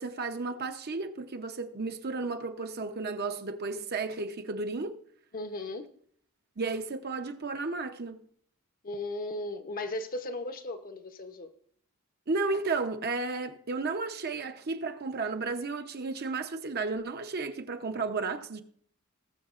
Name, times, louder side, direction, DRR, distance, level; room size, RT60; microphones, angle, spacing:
voice 1, 0.0-5.0 6.6-8.2 12.3-18.6, right 3 dB, 50° right, 0.8 m, -33 dB
voice 2, 5.3-5.9 8.8-11.5, left 2 dB, 40° left, 0.8 m, -36 dB
20.0 x 7.3 x 2.5 m
head